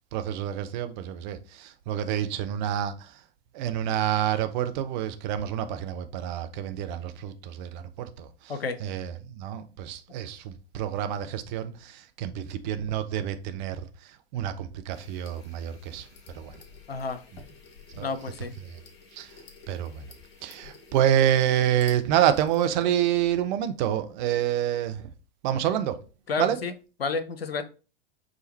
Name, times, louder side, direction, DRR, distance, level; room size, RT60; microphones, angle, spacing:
voice 1, 0.1-3.2 3.5-16.1 16.3-16.5 18.0-18.1 18.6-18.8 19.1-19.3 19.7-20.0 20.4-25.0 25.4-26.0 26.4-26.6, right 10 dB, 50° right, 0.7 m, -28 dB
sound 1, 14.9-23.4, left 4 dB, 60° left, 1.3 m, -51 dB
voice 2, 16.9-17.2 18.0-18.6 25.7-25.8 26.3-26.7 27.0-27.6, left 4 dB, 85° left, 0.6 m, -30 dB
5.0 x 2.5 x 4.3 m
figure-of-eight pair, 90°, 29 cm